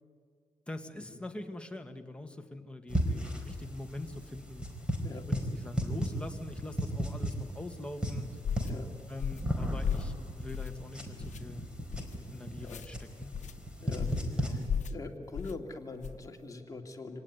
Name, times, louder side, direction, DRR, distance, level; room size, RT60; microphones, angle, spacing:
voice 1, 0.7-5.0 5.3-8.3 9.1-11.6 12.3-13.3 14.4-14.6, left 1 dB, 10° left, 4 dB, 1.8 m, -43 dB
sound 1, 2.9-14.7, equal, 10° right, 4.6 m, -36 dB
sound 2, 8.4-8.7 9.2-9.5 9.8-10.1 10.5-10.9 11.2-11.4 11.9-12.2 12.6-12.9 13.3-13.6 14.0-14.3 14.7-15.0 15.3-15.6 16.0-16.3, left 7 dB, 70° left, 1.1 m, -35 dB
voice 2, 14.9-17.2, left 3 dB, 25° left, 2 dB, 2.6 m, -42 dB
26.5 x 18.5 x 9.8 m, 2.1 s
cardioid pair, 105°, 13 cm